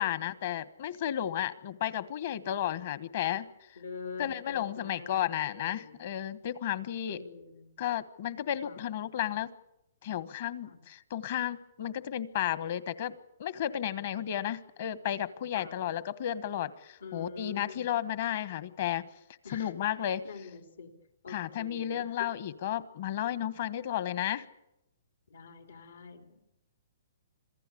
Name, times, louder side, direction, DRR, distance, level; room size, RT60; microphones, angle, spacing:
voice 1, 0.0-3.5 4.2-7.2 7.8-9.5 10.0-19.1 19.5-20.2 21.3-24.4, left 11 dB, 50° left, 16 dB, 1.2 m, -33 dB
voice 2, 3.8-6.0 7.1-7.7 8.6-8.8 10.6-10.8 15.5-15.8 17.0-17.9 19.4-19.7 20.0-20.9 21.2-22.1 25.3-26.4, left 5 dB, 90° left, 6 dB, 3.5 m, -45 dB
26.5 x 16.5 x 8.5 m, 0.88 s
hypercardioid pair, 160°, 0 cm